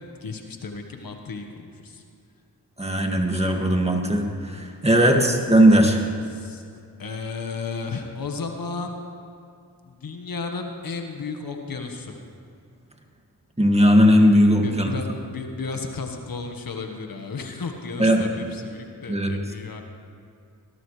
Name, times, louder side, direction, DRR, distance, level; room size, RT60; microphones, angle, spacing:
voice 1, 0.2-2.0 5.1-5.4 6.3-6.6 7.0-9.0 9.9-12.2 14.6-19.8, left 4 dB, 55° left, 4 dB, 1.6 m, -33 dB
voice 2, 2.8-6.0 13.6-14.9 18.0-18.2 19.1-19.3, equal, 15° right, 2 dB, 2.2 m, -18 dB
18.5 x 17.0 x 3.4 m, 2.5 s
supercardioid pair, 45°, 40 cm